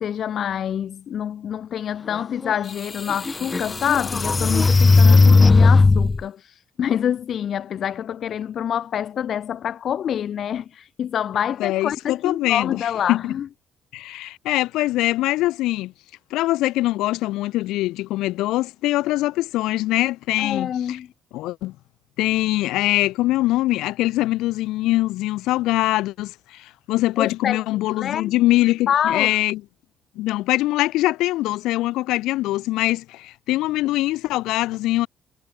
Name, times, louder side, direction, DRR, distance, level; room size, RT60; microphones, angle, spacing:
voice 1, 0.0-13.5 20.4-21.1 27.2-27.6 28.0-28.3 28.9-29.4, left 9 dB, 60° left, 1.3 m, -26 dB
sound 1, 2.4-2.5 3.1-6.2, left 3 dB, 30° left, 1.3 m, -15 dB
voice 2, 11.6-13.3 13.9-15.9 16.3-21.0 21.3-21.7 22.2-29.6 30.1-35.1, left 17 dB, 80° left, 1.5 m, -23 dB
supercardioid pair, 65°, 0 cm